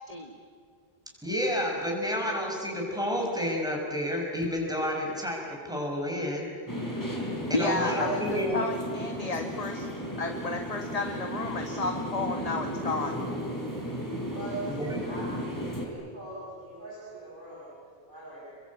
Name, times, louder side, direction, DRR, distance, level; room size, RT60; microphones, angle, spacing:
voice 1, 0.1-0.4 7.5-9.9 10.1-13.2, left 3 dB, 35° left, 4 dB, 1.5 m, -32 dB
voice 2, 1.2-6.5 7.5-8.6 14.7-15.0, left 1 dB, 5° right, -1 dB, 6.1 m, -30 dB
sound 1, 6.7-15.9, equal, 20° left, 4.2 m, -34 dB
voice 3, 14.3-18.6, right 2 dB, 50° right, -7 dB, 6.9 m, -40 dB
28.5 x 22.5 x 8.7 m, 2.1 s
omnidirectional pair, 1.1 m